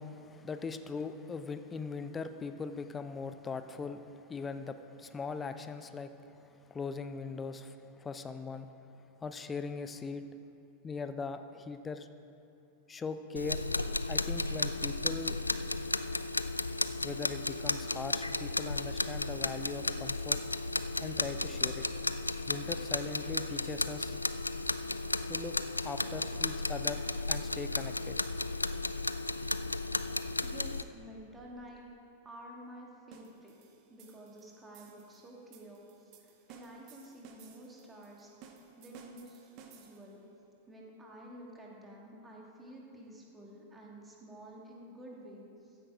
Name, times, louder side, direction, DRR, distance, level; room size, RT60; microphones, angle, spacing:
voice 1, 0.0-10.3 10.8-12.1 12.9-13.6 14.1-15.4 17.0-20.4 21.0-21.9 22.5-24.2 25.3-25.5 25.8-27.0 27.3-28.1, left 4 dB, 20° left, 9 dB, 0.7 m, -40 dB
sound 1, 13.4-30.8, left 2 dB, 85° left, 0.3 m, -34 dB
voice 2, 30.4-31.9 32.2-33.5 33.9-38.5 38.8-40.2 40.7-45.8, right 1 dB, 15° right, -2 dB, 2.7 m, -51 dB
sound 2, 33.1-40.2, right 6 dB, 40° right, 1.3 m, -57 dB
14.5 x 9.9 x 5.0 m, 2.7 s
figure-of-eight pair, 90°, 0 cm